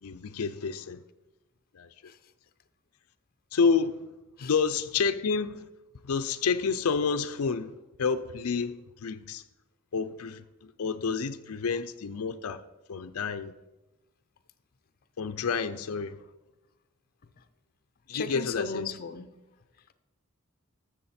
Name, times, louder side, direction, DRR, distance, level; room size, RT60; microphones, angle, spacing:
voice 1, 0.0-1.0 1.7-2.1 3.5-4.1 4.4-5.7 6.0-7.7 8.0-9.4 9.9-12.6 12.9-13.5 15.2-16.2 18.1-18.9, left 5 dB, 90° left, 0.5 m, -29 dB
voice 2, 18.1-19.3, left 5 dB, 45° left, 0.5 m, -35 dB
12.5 x 7.1 x 4.3 m
head